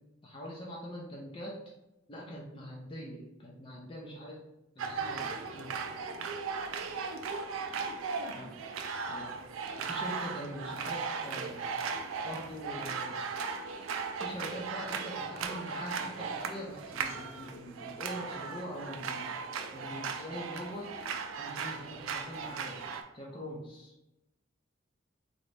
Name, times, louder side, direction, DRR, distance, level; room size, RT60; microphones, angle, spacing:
voice 1, 0.2-1.5 2.1-4.4 4.8-5.8 8.3-8.6 9.1-9.4 9.8-11.7 12.2-13.2 14.2-19.3 19.7-20.9 21.4-22.8 23.1-23.9, equal, 25° left, -4 dB, 0.5 m, -43 dB
sound 1, 4.8-23.0, right 5 dB, 80° right, 0.4 m, -37 dB
3.8 x 2.1 x 3.2 m, 0.95 s
head